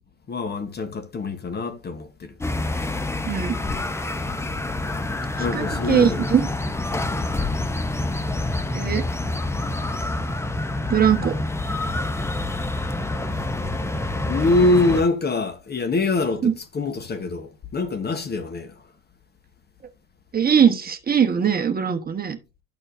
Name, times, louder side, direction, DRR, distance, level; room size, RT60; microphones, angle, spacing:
voice 1, 0.3-2.4 2.6-3.0 5.4-6.3 14.3-18.9, left 2 dB, 25° left, 1.0 m, -24 dB
sound 1, 2.4-15.0, left 2 dB, 5° left, 0.7 m, -27 dB
voice 2, 5.5-6.4 8.7-9.0 10.9-11.3 16.4-16.5 20.3-22.4, right 8 dB, 25° right, 1.2 m, -20 dB
12.5 x 4.3 x 2.6 m
hypercardioid pair, 90°, 39 cm